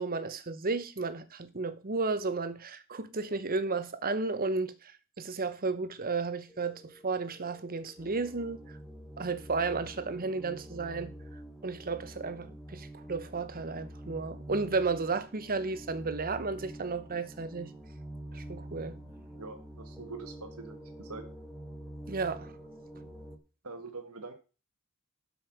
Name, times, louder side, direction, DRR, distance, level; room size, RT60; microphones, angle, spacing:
voice 1, 0.0-4.7 5.2-8.7 9.2-11.1 11.6-17.7 18.3-19.0 22.1-22.5, right 4 dB, 40° right, 1.0 m, -33 dB
sound 1, 6.5-23.4, right 1 dB, ahead, 1.4 m, -47 dB
voice 2, 19.3-21.3 23.6-24.3, right 3 dB, 75° right, 1.6 m, -44 dB
12.5 x 5.6 x 6.1 m
head